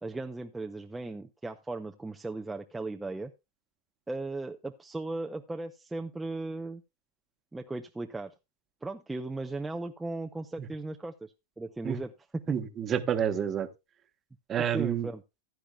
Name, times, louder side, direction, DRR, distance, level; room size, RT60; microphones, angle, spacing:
voice 1, 0.0-3.3 4.1-6.8 7.5-8.3 8.8-11.3 11.6-12.5 14.6-15.2, right 2 dB, 10° right, 0.6 m, -37 dB
voice 2, 12.5-13.7 14.5-15.1, right 9 dB, 25° right, 1.1 m, -29 dB
15.0 x 10.5 x 2.3 m
hypercardioid pair, 125°, 0 cm